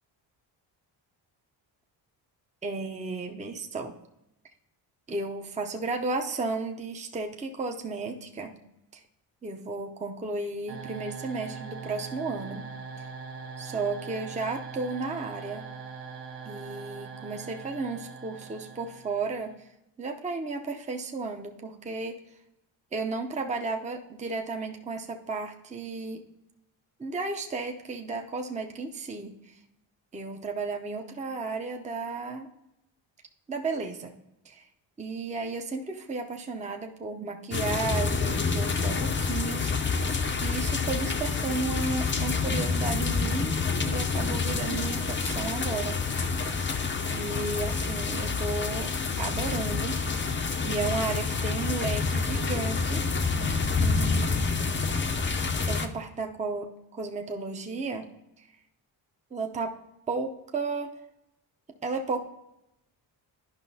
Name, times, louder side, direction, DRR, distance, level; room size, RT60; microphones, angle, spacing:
voice 1, 2.6-3.9 5.1-8.5 8.9-9.0 9.4-12.7 13.0-13.1 13.6-15.7 16.5-19.5 20.0-22.2 22.9-26.2 27.0-29.5 30.1-32.5 33.5-34.1 34.4-34.6 35.0-40.0 40.4-43.5 43.8-46.0 47.1-48.9 49.2-50.0 50.6-53.4 53.7-54.4 55.7-58.1 58.4-58.5 59.3-59.8 60.1-60.9 61.8-62.2, right 3 dB, 15° right, 3 dB, 0.6 m, -33 dB
sound 1, 10.7-19.6, right 5 dB, 70° right, 0.9 m, -41 dB
sound 2, 37.5-55.9, left 4 dB, 25° left, 0.6 m, -28 dB
10.5 x 5.4 x 2.7 m, 0.86 s
cardioid pair, 70°, 47 cm